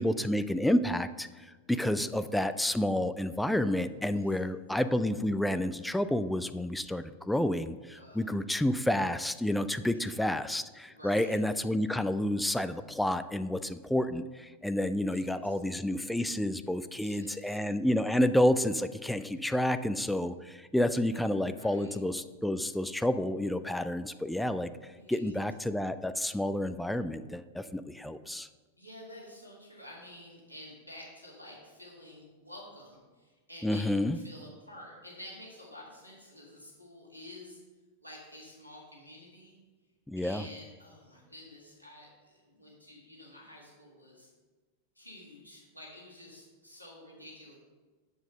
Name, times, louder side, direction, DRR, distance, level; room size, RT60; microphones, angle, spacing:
voice 1, 0.0-24.7 25.1-28.5 33.6-34.2 40.1-40.5, left 1 dB, 5° left, 11 dB, 0.4 m, -30 dB
voice 2, 10.8-11.4 14.7-14.8 15.1-15.2 17.0-17.6 21.1-21.3 21.5-22.0 24.8-25.4 28.8-37.6 38.0-39.5 40.1-44.3 45.0-47.6, left 1 dB, 85° left, -4 dB, 2.7 m, -50 dB
7.4 x 5.3 x 6.5 m, 1.3 s
figure-of-eight pair, 90°, 0 cm